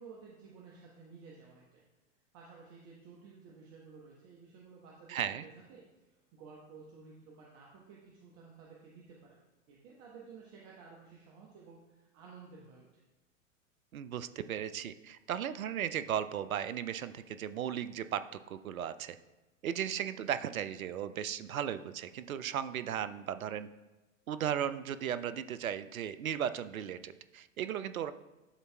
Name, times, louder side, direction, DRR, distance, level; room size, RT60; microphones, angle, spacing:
voice 1, 0.0-1.8 2.3-5.8 6.3-9.4 9.7-13.0, right 5 dB, 40° right, -3 dB, 1.1 m, -54 dB
voice 2, 5.1-5.5 13.9-18.2 18.5-19.2 19.6-23.7 24.3-28.1, right 9 dB, 90° right, 12 dB, 0.5 m, -36 dB
11.0 x 4.0 x 2.3 m, 1.1 s
hypercardioid pair, 100°, 40 cm